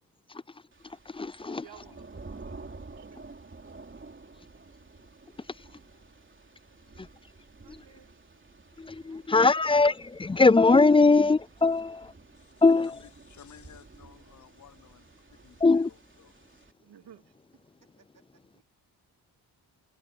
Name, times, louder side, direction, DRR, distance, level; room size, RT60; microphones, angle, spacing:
voice 1, 0.3-1.8 4.3-4.5 5.2-5.7 6.9-7.3 7.7-7.8 8.8-12.2 12.6-13.0 15.6-15.9, left 3 dB, 15° left, 0.4 m, -23 dB
Thunder / Rain, 0.7-16.7, right 3 dB, 30° right, 3.4 m, -50 dB
voice 2, 1.4-2.5 2.8-3.4 7.6-8.2 16.8-17.3 18.5-18.6, right 10 dB, 75° right, 2.5 m, -55 dB
voice 3, 5.7-6.3 6.7-7.2 7.6-8.1 9.1-9.7 16.9-17.0 17.8-18.6, right 5 dB, 50° right, 4.1 m, -68 dB
voice 4, 13.3-15.6 16.4-16.6, left 8 dB, 45° left, 0.7 m, -55 dB
cardioid pair, 75°, 41 cm